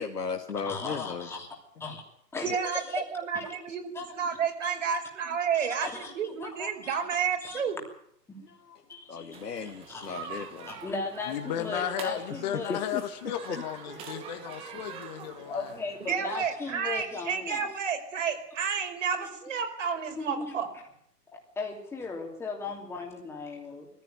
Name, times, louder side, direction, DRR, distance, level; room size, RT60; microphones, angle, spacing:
voice 1, 0.0-1.3 2.5-2.6 8.5-8.8 9.1-10.7 12.3-12.4 12.7-14.0, left 5 dB, 75° left, 3 dB, 2.3 m, -36 dB
voice 2, 0.6-1.5 1.8-2.0 2.3-3.0 3.3-3.5 3.9-4.1 4.6-4.7 5.8-6.1 6.4-7.0 7.4-7.6 8.3-8.5 8.9-9.3 9.9-10.3 10.7-12.8 15.4-17.7 20.2-20.5 21.3-23.9, left 4 dB, 5° left, 0 dB, 3.0 m, -37 dB
voice 3, 2.4-7.8 16.1-20.7, right 6 dB, 50° right, 4 dB, 5.0 m, -31 dB
sound 1, 9.3-16.2, right 7 dB, 10° right, 1.5 m, -44 dB
voice 4, 11.3-15.7, left 10 dB, 25° left, 7 dB, 2.0 m, -34 dB
21.0 x 15.0 x 9.1 m, 0.71 s
hypercardioid pair, 150°, 48 cm